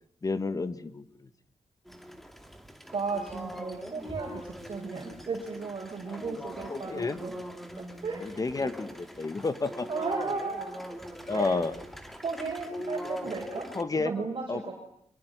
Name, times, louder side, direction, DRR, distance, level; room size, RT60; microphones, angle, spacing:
voice 1, 0.2-1.3 6.1-6.2 6.7-7.2 8.2-9.9 11.3-11.7 13.7-14.1 14.5-14.7, left 3 dB, 30° left, 12 dB, 1.7 m, -31 dB
sound 1, 1.8-13.8, equal, ahead, 2.5 m, -42 dB
voice 2, 2.9-7.3 7.8-8.2 9.9-11.0 11.3-11.6 12.2-14.7, right 4 dB, 45° right, 1 dB, 5.7 m, -35 dB
25.0 x 22.5 x 9.5 m, 0.71 s
wide cardioid pair, 175°, 12 cm